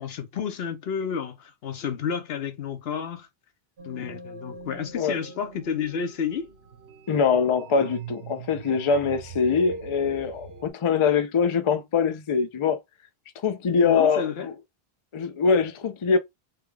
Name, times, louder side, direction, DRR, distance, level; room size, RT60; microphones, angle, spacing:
voice 1, 0.0-3.3 3.8-6.5 13.8-14.5, left 7 dB, 75° left, 1.0 m, -31 dB
sound 1, 3.8-10.7, right 4 dB, 80° right, 1.2 m, -42 dB
voice 2, 7.1-12.8 13.4-14.5 15.1-16.2, left 5 dB, 50° left, 0.4 m, -23 dB
3.5 x 2.2 x 3.3 m
omnidirectional pair, 1.1 m